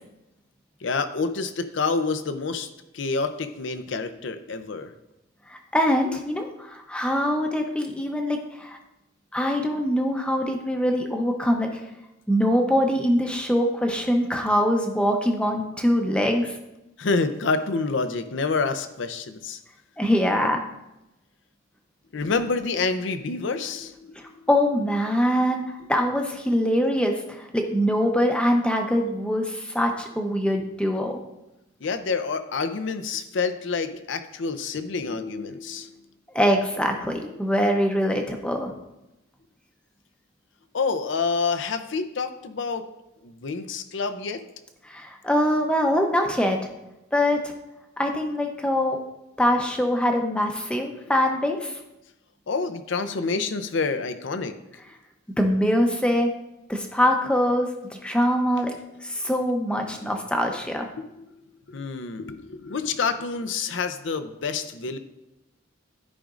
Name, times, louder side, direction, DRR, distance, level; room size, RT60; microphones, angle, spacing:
voice 1, 0.8-2.7 2.9-4.9 17.0-19.6 22.1-24.3 31.8-36.1 40.7-42.8 43.2-44.4 52.5-54.5 61.0-61.4 61.7-65.0, left 4 dB, 65° left, 9 dB, 0.5 m, -28 dB
voice 2, 5.5-8.8 9.3-11.8 12.3-16.6 20.0-20.6 24.5-31.2 36.3-38.7 44.8-46.6 47.1-47.5 48.0-49.0 49.4-51.8 55.4-56.3 56.7-58.7 59.0-60.9, equal, 5° left, 2 dB, 0.7 m, -23 dB
13.5 x 5.0 x 2.5 m, 0.93 s
head